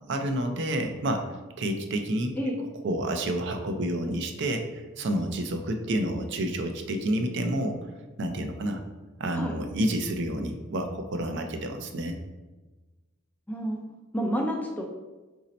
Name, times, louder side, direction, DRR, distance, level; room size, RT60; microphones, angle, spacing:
voice 1, 0.1-2.4 2.8-7.9 8.2-8.8 9.2-12.2, right 1 dB, 55° right, 5 dB, 0.5 m, -29 dB
voice 2, 13.5-13.8 14.1-14.8, equal, 10° left, 1 dB, 0.4 m, -29 dB
4.1 x 2.7 x 4.0 m, 1.2 s
head